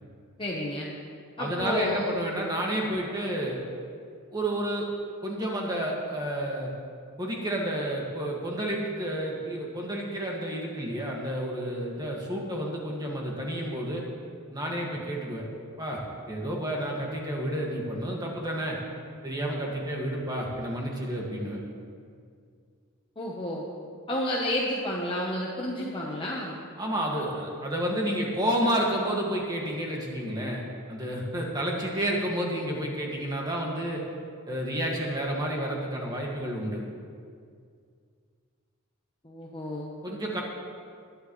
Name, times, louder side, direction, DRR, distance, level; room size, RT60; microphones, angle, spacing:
voice 1, 0.4-0.9 1.4-2.2 23.2-23.6 24.1-26.6 39.2-39.9, left 1 dB, 25° left, -3 dB, 1.0 m, -30 dB
voice 2, 1.4-3.6 4.3-4.9 5.2-6.7 7.2-14.0 14.5-15.5 15.8-16.0 16.3-18.8 19.2-21.6 26.8-30.6 30.9-34.0 34.5-36.8 40.0-40.4, right 1 dB, 20° right, -2 dB, 1.9 m, -30 dB
20.0 x 10.0 x 3.2 m, 2.2 s
head